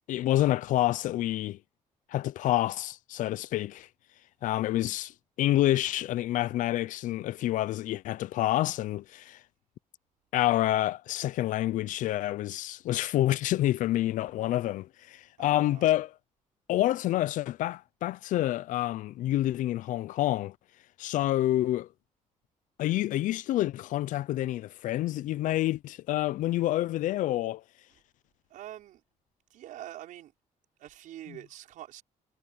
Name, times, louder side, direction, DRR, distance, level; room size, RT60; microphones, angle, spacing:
voice 1, 0.1-1.6 2.1-3.9 4.4-9.4 10.3-16.1 16.7-20.5 21.0-21.9 22.8-27.6, left 14 dB, 75° left, 0.5 m, -28 dB
voice 2, 15.4-15.9 28.5-29.0 29.5-30.3 30.8-32.0, right 13 dB, 80° right, 5.5 m, -45 dB
cardioid pair, 140°, 13 cm